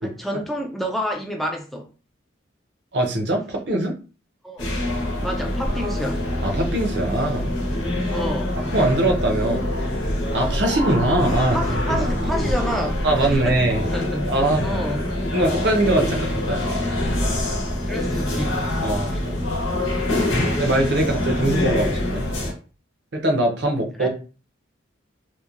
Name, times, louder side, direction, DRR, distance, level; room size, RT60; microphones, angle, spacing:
voice 1, 0.0-1.9 4.4-4.7 5.2-6.2 8.1-8.5 11.5-13.5 13.9-14.3 14.6-15.2 17.9-18.6 19.1-19.2 24.0-24.1, equal, ahead, 2 dB, 0.3 m, -29 dB
voice 2, 2.9-4.0 6.4-7.5 8.7-9.7 10.3-12.1 13.0-13.8 14.3-14.7 15.3-16.7 18.8-19.3 20.6-22.3 23.1-24.1, right 1 dB, 60° right, 2 dB, 0.6 m, -22 dB
sound 1, 4.6-22.5, left 1 dB, 85° left, 0.9 m, -25 dB
2.9 x 2.1 x 2.4 m, 0.35 s
head